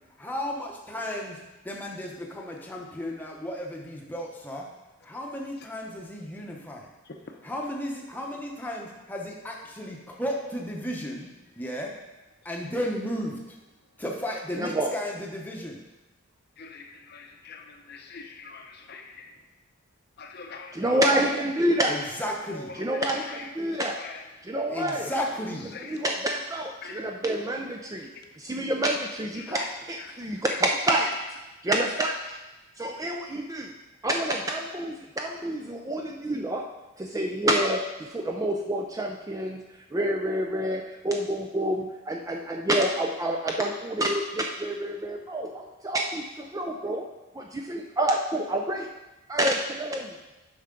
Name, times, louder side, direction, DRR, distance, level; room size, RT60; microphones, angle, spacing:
voice 1, 0.2-4.7 5.0-6.9 7.4-11.3 11.6-11.9 12.4-13.3 14.0-15.8 21.9-22.7 24.7-25.7, equal, 10° left, -1 dB, 0.9 m, -34 dB
voice 2, 14.6-14.9 20.7-22.0 22.8-24.0 24.4-25.1 25.9-28.1 28.4-31.1 31.6-32.4 32.8-33.7 34.0-36.6 37.0-39.6 39.9-47.1 47.3-48.9 49.3-50.0, right 1 dB, 15° right, 2 dB, 0.3 m, -28 dB
voice 3, 16.6-19.3 20.2-20.8 22.5-22.7 23.3-23.5 24.0-24.2 25.7-25.9 26.8-27.0 29.4-29.7 30.1-30.2, left 4 dB, 45° left, 4 dB, 0.6 m, -43 dB
9.1 x 5.5 x 3.8 m, 1.1 s
head